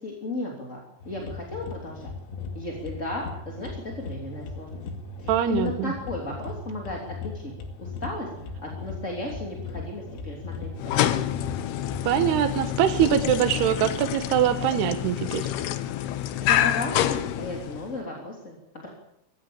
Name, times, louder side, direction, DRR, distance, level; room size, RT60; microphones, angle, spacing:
voice 1, 0.0-2.1 2.5-4.8 5.2-7.5 7.8-8.3 8.6-11.0 16.4-18.9, left 2 dB, 20° left, -1 dB, 2.5 m, -35 dB
sound 1, 1.0-12.7, left 3 dB, 90° left, 4.8 m, -38 dB
voice 2, 5.3-5.9 12.1-15.5, right 10 dB, 70° right, 7 dB, 2.7 m, -23 dB
sound 2, 10.8-18.0, left 12 dB, 75° left, 2.5 m, -27 dB
21.5 x 16.0 x 8.8 m, 0.79 s
omnidirectional pair, 5.7 m